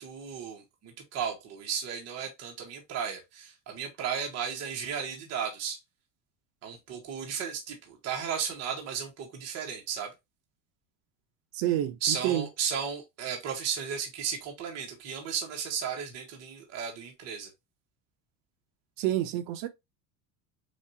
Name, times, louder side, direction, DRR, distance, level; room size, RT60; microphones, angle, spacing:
voice 1, 0.0-5.8 6.6-10.1 12.0-17.5, right 7 dB, 40° right, 1.3 m, -34 dB
voice 2, 11.5-12.5 19.0-19.7, right 13 dB, 55° right, 0.8 m, -28 dB
6.3 x 2.4 x 2.8 m
cardioid pair, 155°, 41 cm